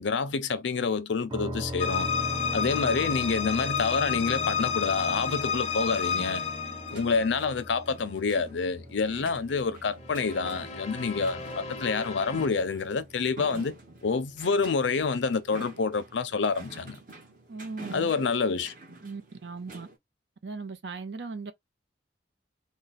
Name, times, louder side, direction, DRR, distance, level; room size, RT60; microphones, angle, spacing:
voice 1, 0.0-2.1 2.5-6.4 6.9-17.0 17.9-18.7, left 4 dB, 80° left, 0.5 m, -28 dB
sound 1, 1.3-15.0, equal, 20° right, 0.6 m, -41 dB
sound 2, 1.8-7.7 10.0-12.5, left 6 dB, 35° left, 0.5 m, -31 dB
sound 3, 5.2-20.0, right 2 dB, 45° right, 1.0 m, -49 dB
voice 2, 17.5-18.1 19.0-19.9 20.4-21.5, right 4 dB, 70° right, 0.7 m, -38 dB
3.1 x 2.2 x 4.0 m
head